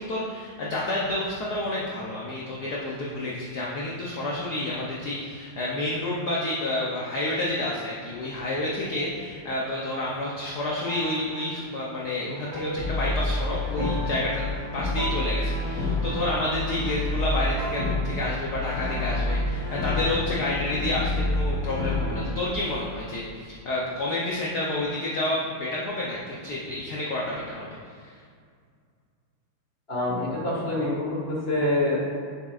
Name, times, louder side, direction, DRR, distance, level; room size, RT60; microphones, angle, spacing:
voice 1, 0.0-27.7 28.0-28.1, left 1 dB, 65° left, -4 dB, 1.1 m, -29 dB
sound 1, 8.4-17.3 17.6-19.6, right 1 dB, 45° right, 0.5 m, -40 dB
Brass instrument, 12.8-22.6, left 2 dB, 80° left, 2.3 m, -28 dB
voice 2, 29.9-32.0, left 1 dB, 30° left, -5 dB, 1.7 m, -26 dB
7.4 x 7.2 x 2.5 m, 2.1 s
omnidirectional pair, 2.4 m